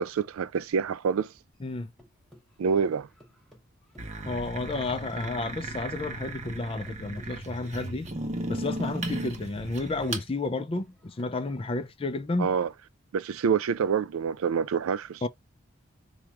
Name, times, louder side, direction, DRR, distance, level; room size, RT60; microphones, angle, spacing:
voice 1, 0.0-1.3 2.6-3.1 12.4-12.7 13.1-15.3, right 6 dB, 85° right, 0.4 m, -27 dB
sound 1, 1.5-5.0 5.2-11.9, left 1 dB, ahead, 0.9 m, -55 dB
voice 2, 1.6-1.9 4.2-8.1 8.5-12.6 15.2-15.3, left 2 dB, 25° left, 0.4 m, -31 dB
sound 2, 4.0-10.3, right 2 dB, 35° right, 0.7 m, -36 dB
4.6 x 2.3 x 2.8 m
head